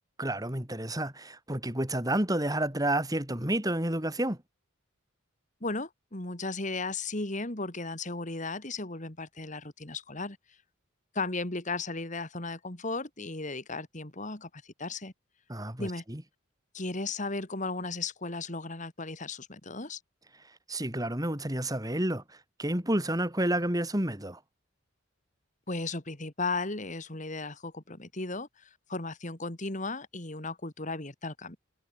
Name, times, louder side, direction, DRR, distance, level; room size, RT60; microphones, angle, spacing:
voice 1, 0.2-4.4 15.5-16.2 20.7-24.4, right 1 dB, 20° right, 3.3 m, -30 dB
voice 2, 5.6-10.4 11.1-15.1 15.8-16.0 16.7-20.0 25.7-31.6, left 3 dB, 35° left, 2.6 m, -35 dB
head